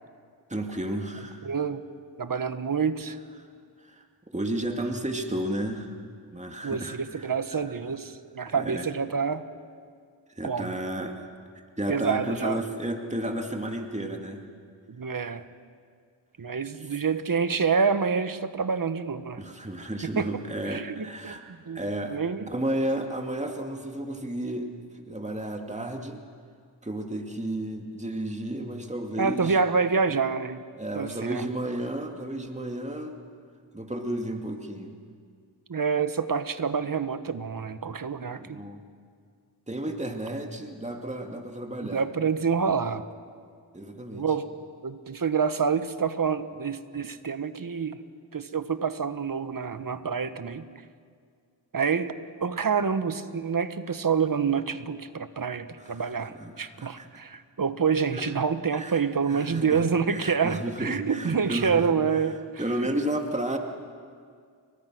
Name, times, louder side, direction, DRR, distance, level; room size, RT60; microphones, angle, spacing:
voice 1, 0.5-1.5 3.8-4.0 4.3-5.9 6.3-7.6 8.4-8.9 10.4-11.2 11.8-14.4 19.3-21.4 21.7-22.2 22.5-24.7 24.9-26.2 26.8-29.6 30.8-33.2 33.7-35.0 38.4-38.8 39.7-42.0 43.7-44.3 55.8-57.2 58.1-58.2 58.7-59.0 59.3-59.8 60.1-61.9 62.6-63.6, right 1 dB, 15° right, 3 dB, 2.4 m, -32 dB
voice 2, 1.4-1.8 2.2-3.2 6.6-9.4 10.4-10.7 11.9-12.6 14.9-15.4 16.4-19.4 20.0-20.3 20.7-22.5 29.2-30.6 30.9-31.5 35.7-38.6 41.8-43.0 44.1-44.5 44.8-48.0 48.3-50.6 51.7-52.1 52.4-62.6, right 5 dB, 50° right, 11 dB, 1.4 m, -27 dB
30.0 x 23.5 x 6.3 m, 2.1 s
cardioid pair, 55°, 43 cm